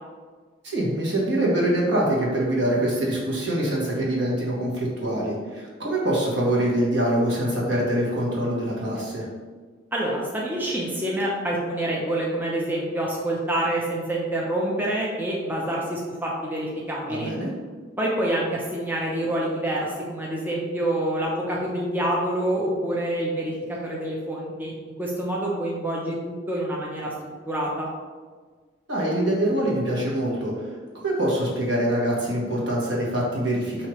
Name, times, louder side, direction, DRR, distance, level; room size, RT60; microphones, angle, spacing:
voice 1, 0.6-9.3 17.1-17.5 28.9-30.7 31.0-33.9, right 1 dB, 75° right, -5 dB, 1.2 m, -24 dB
voice 2, 9.9-17.3 18.0-27.9, right 1 dB, 10° right, -4 dB, 0.5 m, -27 dB
4.7 x 2.8 x 3.0 m, 1.5 s
head